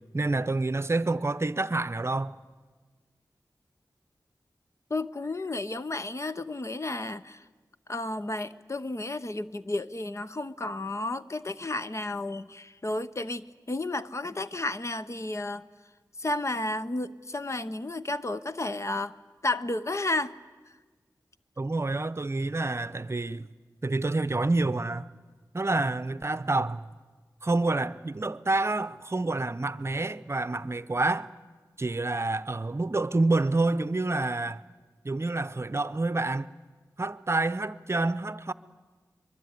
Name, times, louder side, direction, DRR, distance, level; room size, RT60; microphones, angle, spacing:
voice 1, 0.1-2.4 21.6-23.5 23.8-25.1 25.5-26.9 27.4-31.3 31.8-34.6 35.0-36.5 37.0-38.5, right 2 dB, 35° right, 0.8 m, -28 dB
voice 2, 4.9-7.4 7.9-15.6 16.2-19.1 19.4-20.3, left 2 dB, 40° left, 0.9 m, -32 dB
23.5 x 22.5 x 9.5 m
wide cardioid pair, 65°, 7 cm